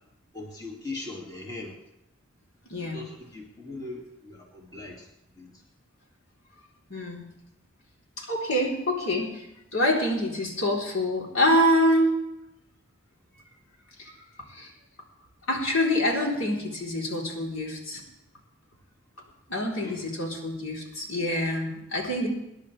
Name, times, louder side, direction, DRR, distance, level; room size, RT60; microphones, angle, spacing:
voice 1, 0.3-1.7 2.8-5.1 5.4-5.6 19.8-20.0, left 2 dB, 20° left, -1 dB, 2.2 m, -40 dB
voice 2, 2.7-3.0 6.9-7.2 8.2-9.4 9.7-12.1 14.0-14.1 14.5-14.7 15.5-18.0 19.5-22.3, left 1 dB, 85° left, -2 dB, 3.7 m, -26 dB
25.5 x 10.5 x 3.3 m, 0.86 s
head